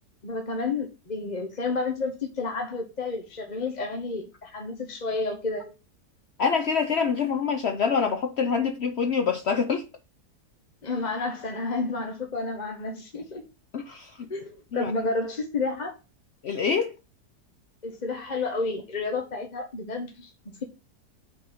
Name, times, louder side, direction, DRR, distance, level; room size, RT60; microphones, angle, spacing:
voice 1, 0.2-5.7 10.8-13.4 14.3-15.9 17.8-20.3, left 3 dB, 30° left, 1.0 m, -30 dB
voice 2, 6.4-9.9 13.7-14.3 14.7-14.9 16.4-16.9, left 6 dB, 65° left, 0.7 m, -25 dB
5.6 x 4.0 x 5.7 m
omnidirectional pair, 1.7 m